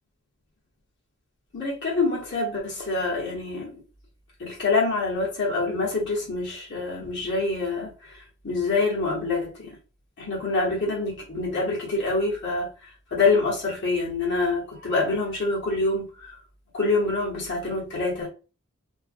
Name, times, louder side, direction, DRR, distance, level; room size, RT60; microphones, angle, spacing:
voice 1, 1.5-3.7 4.4-9.8 10.2-16.4 16.7-18.3, left 3 dB, 55° left, 1.0 m, -26 dB
2.5 x 2.2 x 2.5 m
head